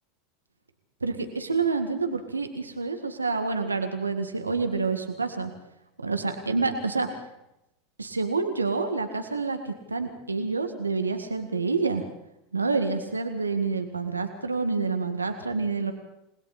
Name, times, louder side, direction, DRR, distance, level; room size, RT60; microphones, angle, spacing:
voice 1, 1.0-5.5 6.0-7.1 8.0-12.0 12.5-15.9, right 4 dB, 90° right, 7 dB, 1.9 m, -28 dB
29.0 x 20.5 x 4.3 m, 0.84 s
figure-of-eight pair, 85°, 0 cm